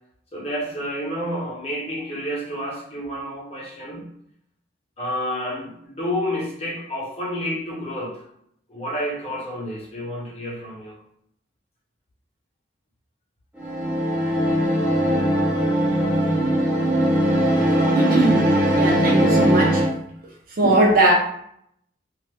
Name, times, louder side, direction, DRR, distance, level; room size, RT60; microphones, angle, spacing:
voice 1, 0.3-4.1 5.0-8.2 8.7-11.0, equal, 35° left, 1.1 m, -30 dB
sound 1, 13.6-19.9, equal, 5° right, 0.8 m, -20 dB
voice 2, 17.9-19.9 20.6-21.1, right 2 dB, 50° right, 0.6 m, -20 dB
2.7 x 2.3 x 3.3 m
head